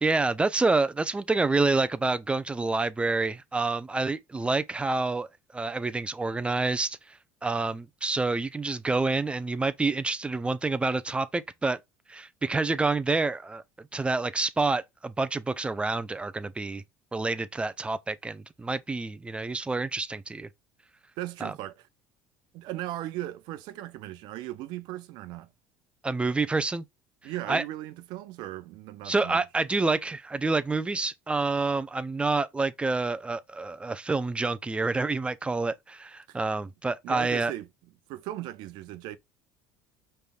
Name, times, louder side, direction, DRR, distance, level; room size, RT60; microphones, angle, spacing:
voice 1, 0.0-5.3 5.5-7.0 7.4-11.8 12.1-16.8 17.1-20.5 21.4-21.5 26.0-26.8 27.5-27.6 29.0-37.5, right 3 dB, 15° right, 0.5 m, -28 dB
voice 2, 21.2-21.9 22.5-25.5 27.2-29.4 36.3-36.4 37.0-37.7 38.1-39.2, right 15 dB, 70° right, 0.6 m, -37 dB
5.2 x 3.3 x 2.3 m
supercardioid pair, 95°, 8 cm